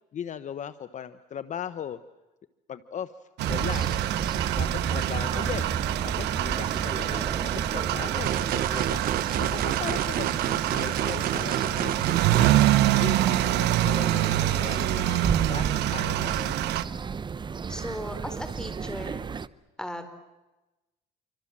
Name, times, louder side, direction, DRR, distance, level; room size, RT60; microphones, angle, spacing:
voice 1, 0.1-2.0 2.7-3.1 3.4-4.0 4.6-5.7 6.0-16.7, left 9 dB, 45° left, 13 dB, 1.0 m, -38 dB
sound 1, 3.4-19.5, right 6 dB, 25° right, 0.8 m, -33 dB
sound 2, 3.4-16.8, right 14 dB, 85° right, 1.1 m, -26 dB
sound 3, 8.3-12.6, right 11 dB, 60° right, 0.9 m, -31 dB
voice 2, 17.7-19.2 19.8-20.1, left 1 dB, 5° left, 7 dB, 4.3 m, -37 dB
27.5 x 25.0 x 7.4 m, 1.1 s
cardioid pair, 110°, 17 cm